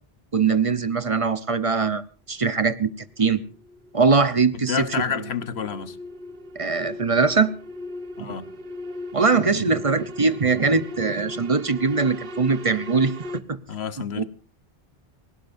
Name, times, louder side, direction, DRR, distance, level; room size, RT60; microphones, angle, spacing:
voice 1, 0.3-2.0 2.3-3.4 3.9-4.9 6.5-7.5 8.2-8.3 9.1-13.6 14.2-14.3, right 4 dB, 35° right, 0.9 m, -22 dB
sound 1, 2.9-13.4, left 1 dB, 60° right, 1.3 m, -38 dB
voice 2, 4.5-6.0 8.2-8.5 13.7-14.2, left 7 dB, 85° left, 1.3 m, -29 dB
25.5 x 17.5 x 2.6 m
omnidirectional pair, 1.0 m